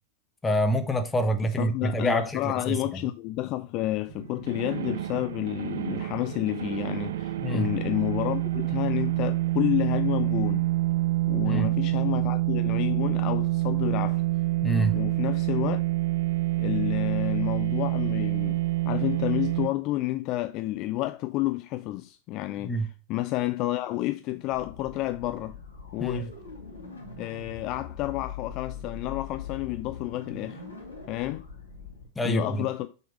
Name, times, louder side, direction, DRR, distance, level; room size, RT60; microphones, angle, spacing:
voice 1, 0.4-3.1 7.4-7.7 11.4-11.7 14.6-15.0 22.6-22.9 26.0-26.2 32.2-32.7, right 1 dB, 10° left, 0.8 m, -27 dB
voice 2, 1.6-10.7 11.3-14.2 14.9-15.8 16.6-22.7 23.1-25.6 25.9-26.3 27.2-30.6 31.1-31.4 32.2-32.9, left 17 dB, 40° left, 0.3 m, -30 dB
sound 1, 4.1-19.7, right 17 dB, 60° right, 0.4 m, -27 dB
sound 2, 24.5-32.1, left 6 dB, 80° left, 2.0 m, -42 dB
5.9 x 3.6 x 4.6 m
figure-of-eight pair, 90°, 0 cm